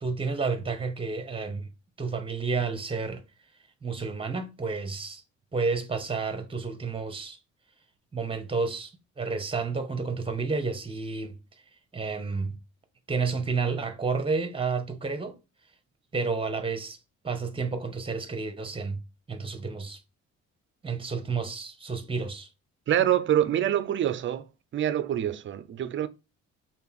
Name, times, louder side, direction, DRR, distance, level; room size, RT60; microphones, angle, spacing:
voice 1, 0.0-1.7 2.0-3.2 3.8-5.2 5.5-7.4 8.1-11.4 11.9-12.5 13.1-15.4 16.1-17.0 17.2-19.0 19.3-20.0 20.8-22.5, right 4 dB, 20° right, 0.8 m, -30 dB
voice 2, 22.9-24.4 24.7-26.1, right 11 dB, 40° right, 0.4 m, -25 dB
3.3 x 2.6 x 3.6 m
cardioid pair, 90°, 30 cm